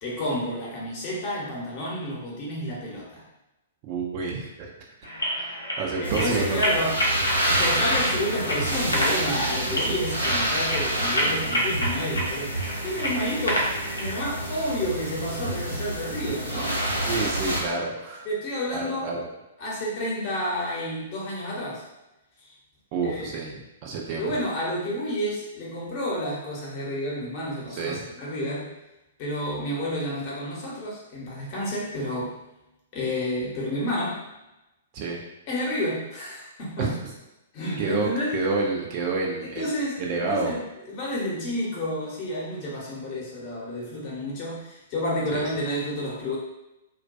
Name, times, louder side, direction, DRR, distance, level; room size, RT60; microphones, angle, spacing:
voice 1, 0.0-3.2 6.0-12.6 12.8-13.7 14.0-16.8 18.2-19.1 19.6-21.8 22.4-22.5 23.0-23.4 24.1-28.7 29.2-32.4 32.9-34.3 35.5-36.9 37.5-38.3 39.4-46.4, left 1 dB, 35° left, -5 dB, 0.8 m, -30 dB
voice 2, 3.8-4.7 5.2-6.6 9.7-10.0 17.0-18.3 18.7-19.3 22.9-24.4 27.8-28.1 34.9-35.2 36.8-37.1 37.8-39.7 40.0-40.5 45.3-45.5, right 4 dB, 35° right, -1 dB, 0.4 m, -29 dB
sound 1, 5.0-14.1, equal, 75° left, 0.6 m, -29 dB
sound 2, 6.0-17.6, right 1 dB, 85° right, 0.7 m, -28 dB
2.2 x 2.2 x 2.5 m, 0.94 s
figure-of-eight pair, 110°, 0 cm